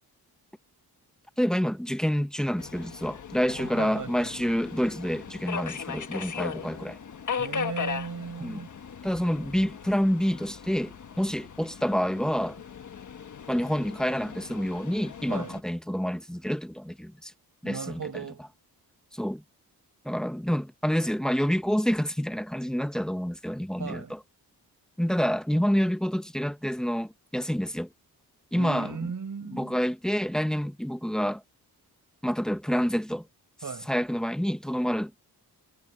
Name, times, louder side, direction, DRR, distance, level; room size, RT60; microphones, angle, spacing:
voice 1, 1.4-7.0 8.4-8.6 9.0-12.6 13.5-17.3 17.6-18.0 19.1-19.4 20.0-24.2 25.0-27.9 28.5-29.1 29.5-31.4 32.2-33.3 33.9-35.1, equal, ahead, 1.0 m, -28 dB
Subway metro underground, 2.6-15.6, left 6 dB, 50° left, 1.3 m, -38 dB
voice 2, 3.5-4.5 7.4-8.7 15.3-15.5 17.6-18.5 23.8-24.1 28.5-29.8 33.6-33.9, right 6 dB, 50° right, 7.4 m, -37 dB
wide cardioid pair, 125°, 39 cm